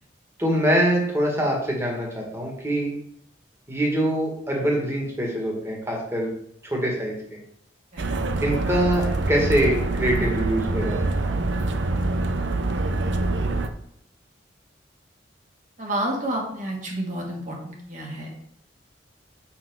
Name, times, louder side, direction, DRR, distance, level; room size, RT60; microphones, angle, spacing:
voice 1, 0.4-2.9 3.7-6.3 6.6-7.1 8.4-11.0 11.2-11.3, right 1 dB, 15° right, -1 dB, 1.9 m, -24 dB
voice 2, 7.9-8.5 13.0-13.1 15.8-18.3, right 1 dB, 45° right, -1 dB, 1.8 m, -30 dB
sound 1, 8.0-13.7, right 2 dB, 85° right, 0.7 m, -25 dB
5.9 x 5.8 x 4.7 m, 0.71 s
head